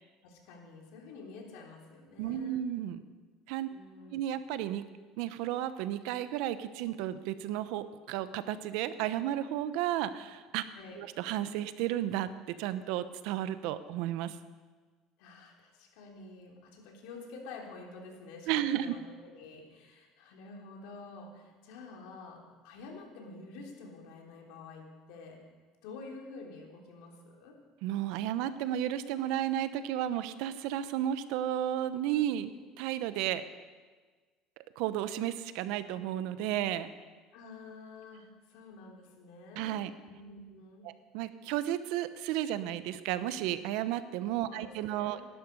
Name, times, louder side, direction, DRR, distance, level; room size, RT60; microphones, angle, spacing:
voice 1, 0.2-2.6 3.7-4.2 10.7-11.0 15.2-25.4 25.8-27.6 37.3-39.7 40.0-40.9 44.5-45.3, left 3 dB, 80° left, 0 dB, 3.4 m, -49 dB
voice 2, 2.2-3.0 3.5-3.7 4.1-4.8 5.2-10.6 11.0-12.3 12.6-14.4 18.5-19.0 27.8-32.5 32.8-33.4 34.8-36.9 39.6-39.9 40.8-45.2, right 12 dB, 75° right, 12 dB, 0.9 m, -33 dB
18.0 x 12.0 x 5.4 m, 1.4 s
supercardioid pair, 115°, 0 cm